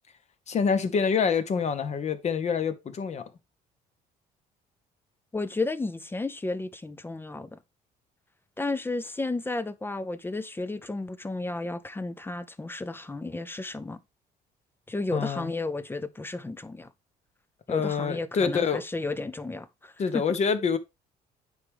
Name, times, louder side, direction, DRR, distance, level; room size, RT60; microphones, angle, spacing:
voice 1, 0.5-3.3 15.1-15.5 17.7-18.8 20.0-20.8, left 6 dB, 40° left, 1.0 m, -26 dB
voice 2, 5.3-7.6 8.6-14.0 14.9-16.9 17.7-20.2, left 2 dB, 15° left, 0.5 m, -33 dB
9.5 x 3.4 x 3.4 m
cardioid pair, 110°, 17 cm